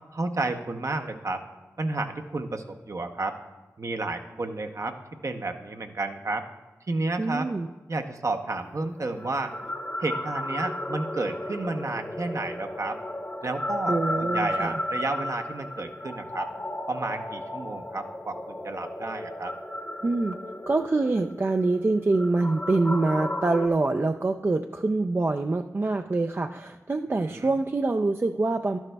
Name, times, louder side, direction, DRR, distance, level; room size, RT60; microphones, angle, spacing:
voice 1, 0.1-1.4 1.8-3.4 3.8-5.0 5.2-6.5 6.9-7.5 7.9-9.5 10.0-13.0 13.4-16.5 16.9-19.5 27.2-27.5, right 2 dB, 55° right, 5 dB, 0.7 m, -31 dB
voice 2, 7.2-7.7 13.9-14.7 20.0-20.4 20.7-28.8, right 3 dB, 40° right, 5 dB, 0.4 m, -25 dB
sound 1, 9.0-23.7, left 1 dB, 25° left, 0.8 m, -34 dB
11.5 x 10.5 x 2.3 m, 1.1 s
cardioid pair, 45°, 6 cm